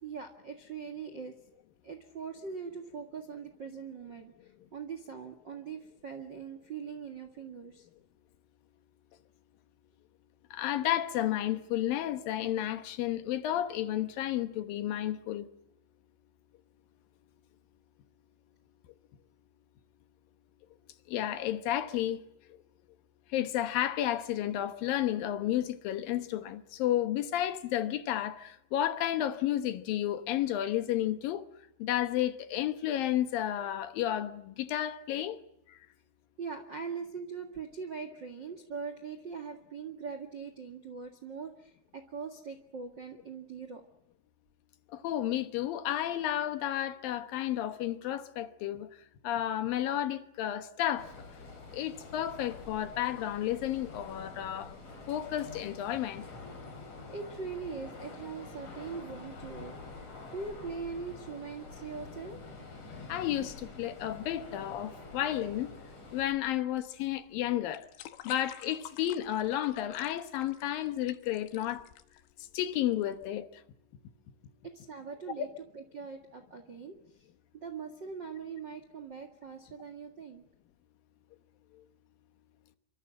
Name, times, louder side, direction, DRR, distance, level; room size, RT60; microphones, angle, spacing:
voice 1, 0.0-1.3 1.8-7.9 36.4-43.8 56.8-62.4 74.6-75.5 75.7-77.3 77.6-80.4, right 5 dB, 65° right, 1.1 m, -42 dB
voice 2, 10.5-15.5 21.1-22.2 23.3-31.4 31.8-35.4 35.7-35.8 44.9-48.9 49.2-51.1 51.7-54.7 55.1-56.2 63.1-65.7 66.1-67.9 68.2-71.9 72.4-73.6 81.7-81.8, left 12 dB, 70° left, 2.3 m, -32 dB
sound 1, 51.0-66.2, left 3 dB, 35° left, 5.7 m, -47 dB
sound 2, 66.2-73.3, left 12 dB, 90° left, 3.7 m, -51 dB
26.5 x 24.5 x 7.6 m
omnidirectional pair, 5.4 m